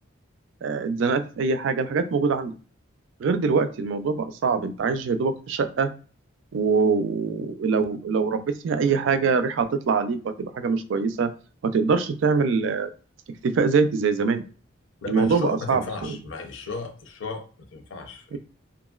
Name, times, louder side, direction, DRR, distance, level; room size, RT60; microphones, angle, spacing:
voice 1, 0.6-2.5 3.2-5.9 6.5-11.3 11.6-12.9 13.3-14.4 15.1-16.2 18.3-18.4, right 5 dB, 70° right, 10 dB, 0.3 m, -24 dB
voice 2, 15.0-18.4, left 3 dB, 75° left, 5 dB, 0.6 m, -35 dB
2.9 x 2.5 x 2.3 m, 0.38 s
head